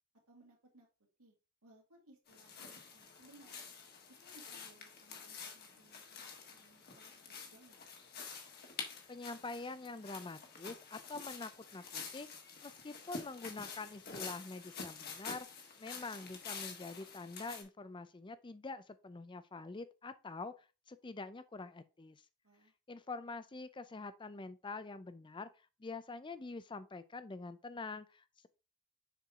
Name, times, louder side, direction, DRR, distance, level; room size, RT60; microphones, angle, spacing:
voice 1, 0.3-0.9 1.2-1.3 1.6-3.6 4.2-7.8 22.4-22.7, right 2 dB, 75° right, 2.3 m, -64 dB
sound 1, 2.3-17.6, left 5 dB, 45° left, 1.5 m, -48 dB
voice 2, 9.1-12.3 12.6-15.5 15.8-22.2 22.9-25.5 25.8-28.5, left 3 dB, 20° left, 0.4 m, -46 dB
6.8 x 4.7 x 3.6 m
head